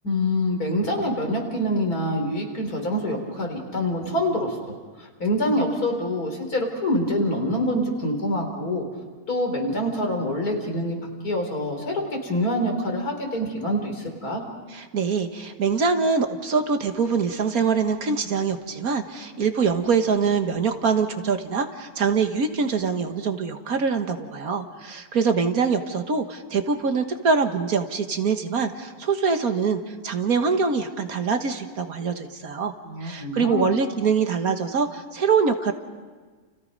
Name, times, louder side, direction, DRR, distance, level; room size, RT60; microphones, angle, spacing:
voice 1, 0.0-4.6 5.0-8.8 9.3-11.0 11.2-14.4 32.8-33.7, left 1 dB, 70° left, 2 dB, 4.5 m, -25 dB
voice 2, 14.7-32.7 33.0-35.7, right 5 dB, 65° right, 6 dB, 1.9 m, -24 dB
30.0 x 30.0 x 5.4 m, 1.4 s
omnidirectional pair, 1.6 m